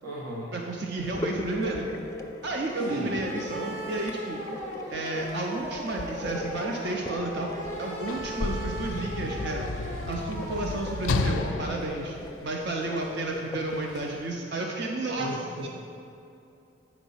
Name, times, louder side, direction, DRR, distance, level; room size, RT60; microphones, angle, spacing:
voice 1, 0.0-0.5 2.8-3.1 15.2-15.7, equal, 90° right, -6 dB, 1.1 m, -35 dB
voice 2, 0.5-1.9 2.4-4.4 4.9-12.2 12.4-15.3 15.6-15.7, right 2 dB, 55° right, 0 dB, 0.6 m, -32 dB
sound 1, 1.0-14.1, left 1 dB, 15° left, 0.4 m, -41 dB
sound 2, 2.7-11.5, right 1 dB, 40° right, 1.1 m, -38 dB
Sliding door / Slam, 7.6-13.0 13.9-14.1, left 3 dB, 80° left, 0.4 m, -32 dB
8.1 x 5.0 x 5.5 m, 2.7 s
head